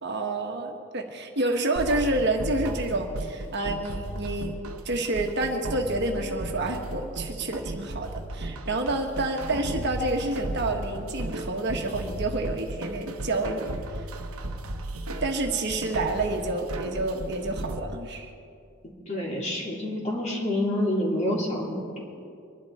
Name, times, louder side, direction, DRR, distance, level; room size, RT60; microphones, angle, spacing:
voice 1, 0.0-4.6 4.8-14.1 15.2-18.3, right 2 dB, 50° right, 3 dB, 1.4 m, -29 dB
sound 1, 1.8-17.8, right 1 dB, 80° right, 1.0 m, -35 dB
voice 2, 19.1-22.0, left 1 dB, 30° left, -4 dB, 3.5 m, -28 dB
24.5 x 11.5 x 4.3 m, 2.4 s
head